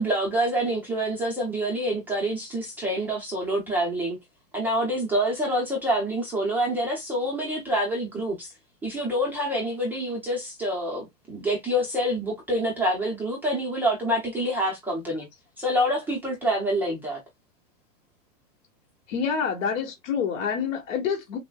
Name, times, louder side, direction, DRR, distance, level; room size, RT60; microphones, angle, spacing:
voice 1, 0.0-4.2 4.5-8.5 8.8-15.3 15.6-17.2, equal, 5° right, 0.5 m, -26 dB
voice 2, 19.1-21.4, left 6 dB, 65° left, 1.3 m, -27 dB
5.8 x 2.1 x 2.3 m
supercardioid pair, 160°, 40 cm